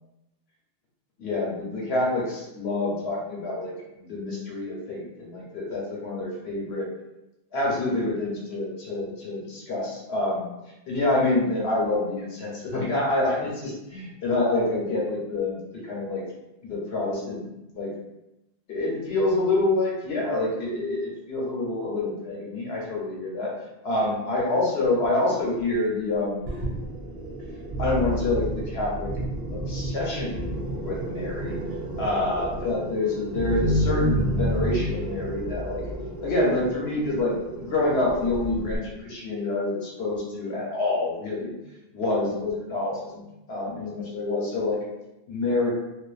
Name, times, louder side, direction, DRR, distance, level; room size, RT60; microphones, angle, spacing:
voice 1, 1.2-6.9 7.5-10.5 10.9-16.2 16.6-17.4 17.7-17.9 18.7-23.5 23.8-26.4 27.8-29.1 29.5-30.4 30.8-31.6 32.0-35.8 36.2-41.5 41.9-44.8 45.3-45.7, left 2 dB, 80° left, -4 dB, 1.0 m, -27 dB
sound 1, 26.5-38.8, equal, 85° right, 0.9 m, -30 dB
2.4 x 2.2 x 2.4 m, 0.93 s
omnidirectional pair, 1.0 m